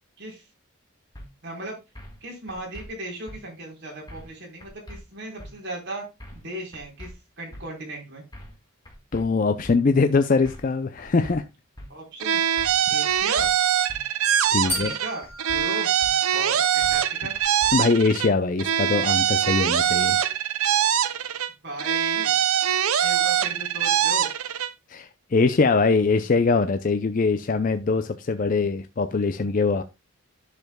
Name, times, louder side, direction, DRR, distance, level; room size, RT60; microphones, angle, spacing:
sound 1, 1.1-1.3 2.0-2.2 2.5-2.9 3.3-3.4 4.1-4.3 4.6-5.0 5.4-5.5 6.2-6.5 6.7-7.1 7.5-7.6 8.3-8.6 8.9-9.2 9.6-9.8 10.4-10.7 11.0-11.4 11.8-11.9 12.6-12.8 13.1-13.5 13.9-14.0 14.7-15.0 15.2-15.6 16.0-16.1 16.8-17.1 17.3-17.7, equal, 20° left, 1.6 m, -42 dB
voice 1, 1.4-1.8 2.2-6.0 6.3-8.2 11.9-12.4 12.9-13.5 14.6-15.9 16.3-17.3 21.6-22.4 23.0-24.3, right 1 dB, 50° right, 4.0 m, -37 dB
voice 2, 9.1-11.4 14.5-14.9 17.7-20.2 24.9-29.8, left 4 dB, 40° left, 0.4 m, -22 dB
sound 2, 12.2-15.1 15.4-18.3 18.6-21.5 21.8-24.7, right 9 dB, 85° right, 0.6 m, -23 dB
sound 3, 14.7-16.9, equal, 10° right, 4.9 m, -35 dB
10.5 x 6.7 x 2.2 m
head